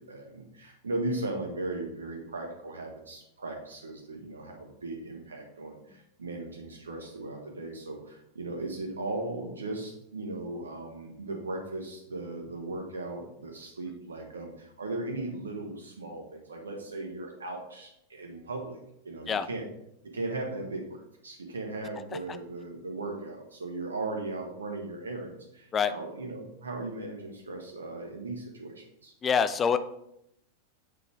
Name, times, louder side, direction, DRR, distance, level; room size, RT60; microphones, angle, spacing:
voice 1, 0.0-19.7 20.0-29.1, right 2 dB, 70° right, 3 dB, 1.1 m, -37 dB
voice 2, 29.2-29.8, left 7 dB, 20° left, 11 dB, 0.4 m, -25 dB
8.1 x 4.0 x 3.4 m, 0.77 s
figure-of-eight pair, 90°, 0 cm